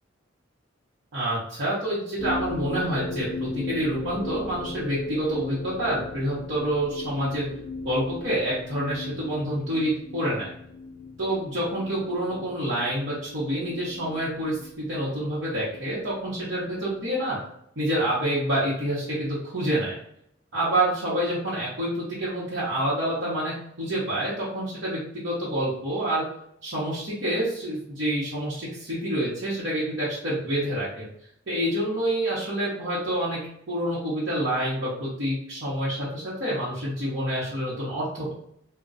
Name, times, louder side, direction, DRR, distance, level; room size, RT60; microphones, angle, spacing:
voice 1, 1.1-7.5 7.8-10.5 11.2-17.4 17.8-20.0 20.5-26.2 26.6-31.0 31.5-33.4 33.7-38.3, right 1 dB, 70° right, -8 dB, 0.9 m, -27 dB
sound 1, 2.2-17.1, left 3 dB, 65° left, 0.3 m, -38 dB
2.4 x 2.2 x 3.9 m, 0.72 s
head